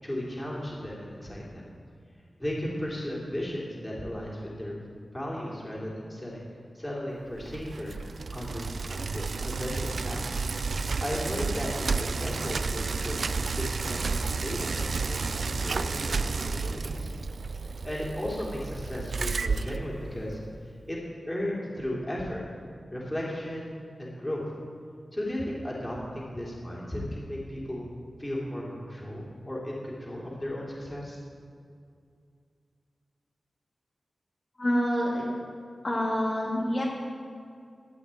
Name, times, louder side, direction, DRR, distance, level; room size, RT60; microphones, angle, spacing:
voice 1, 0.0-1.7 2.4-4.7 5.1-6.4 6.7-8.0 8.3-10.4 11.0-13.3 13.5-17.1 17.5-21.0 21.3-22.4 22.9-24.4 25.1-27.9 28.2-31.2, left 1 dB, 15° left, -5 dB, 3.4 m, -35 dB
Bicycle, 7.3-20.5, right 4 dB, 65° right, 0.4 m, -31 dB
voice 2, 34.6-35.3 35.8-36.8, equal, 40° left, -6 dB, 2.7 m, -27 dB
14.0 x 5.8 x 9.1 m, 2.3 s
wide cardioid pair, 105°, 0 cm